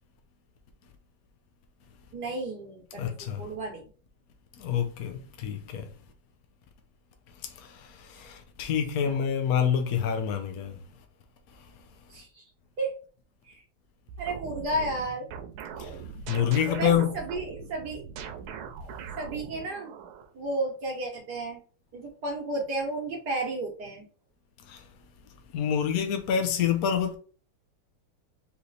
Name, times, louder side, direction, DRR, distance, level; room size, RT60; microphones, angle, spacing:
voice 1, 2.1-3.9 9.0-9.2 12.1-12.5 12.8-12.9 13.4-13.6 14.2-15.3 16.7-18.0 19.2-19.9 20.3-21.6 21.9-24.1, right 2 dB, 55° right, 1.4 m, -33 dB
voice 2, 2.9-3.5 4.6-5.9 7.4-10.8 11.5-11.7 15.8-17.1 24.6-24.9 25.5-27.2, left 8 dB, 70° left, 0.8 m, -28 dB
sound 1, 14.1-20.3, right 6 dB, 80° right, 1.6 m, -41 dB
4.1 x 3.2 x 4.0 m
omnidirectional pair, 2.4 m